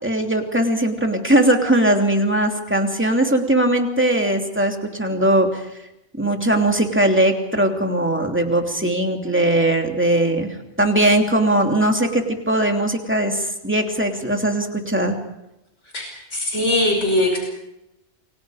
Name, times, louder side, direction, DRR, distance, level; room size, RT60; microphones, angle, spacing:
voice 1, 0.0-5.7 6.2-10.5 10.8-15.2, right 1 dB, 10° right, 3 dB, 2.8 m, -19 dB
voice 2, 16.3-17.4, left 1 dB, 80° left, 2 dB, 5.8 m, -20 dB
29.5 x 24.0 x 5.0 m, 0.89 s
omnidirectional pair, 1.2 m